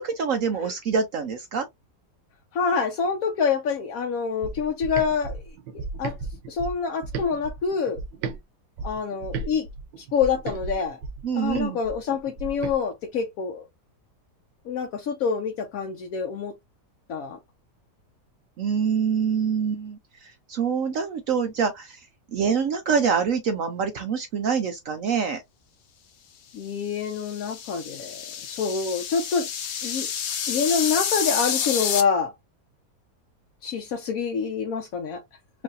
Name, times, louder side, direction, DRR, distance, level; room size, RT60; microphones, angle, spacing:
voice 1, 0.0-1.7 11.2-11.8 18.6-22.0 22.3-25.4, right 6 dB, 65° right, 0.9 m, -25 dB
voice 2, 2.5-5.4 6.0-6.1 6.5-8.0 8.8-9.7 10.0-11.0 11.3-13.7 14.7-16.5 17.1-17.4 26.5-29.5 29.8-30.1 30.5-32.3 33.6-35.2, left 6 dB, 65° left, 1.1 m, -26 dB
sound 1, 4.4-8.4 8.8-12.8, right 4 dB, 90° right, 1.3 m, -35 dB
sound 2, 26.9-32.0, left 8 dB, 85° left, 1.5 m, -29 dB
4.6 x 2.6 x 2.5 m
omnidirectional pair, 1.8 m